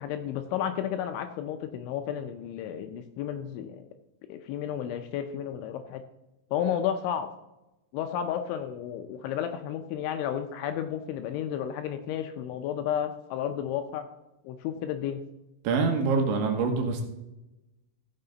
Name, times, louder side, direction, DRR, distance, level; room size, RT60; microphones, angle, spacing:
voice 1, 0.0-3.9 4.3-6.0 6.5-7.3 7.9-14.0 14.4-15.2, left 9 dB, 80° left, 7 dB, 2.8 m, -32 dB
voice 2, 15.7-17.0, right 4 dB, 75° right, 3 dB, 3.4 m, -25 dB
15.5 x 6.7 x 3.9 m, 0.96 s
omnidirectional pair, 5.8 m